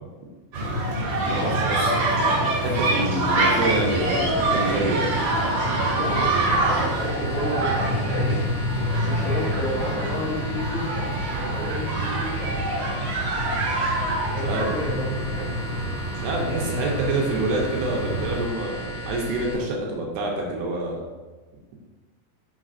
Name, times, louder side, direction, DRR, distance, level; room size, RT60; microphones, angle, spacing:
sound 1, 0.5-18.5, right 1 dB, 55° right, 2.7 m, -25 dB
voice 1, 1.3-5.1 14.4-14.8 16.1-21.0, right 2 dB, 80° right, -1 dB, 2.8 m, -27 dB
sound 2, 3.5-19.5, right 1 dB, 80° left, 1.3 m, -36 dB
voice 2, 5.9-8.5 8.9-12.5 14.3-15.5 16.5-16.9, left 1 dB, 65° left, -7 dB, 2.1 m, -31 dB
6.2 x 6.2 x 2.5 m, 1.3 s
omnidirectional pair, 4.7 m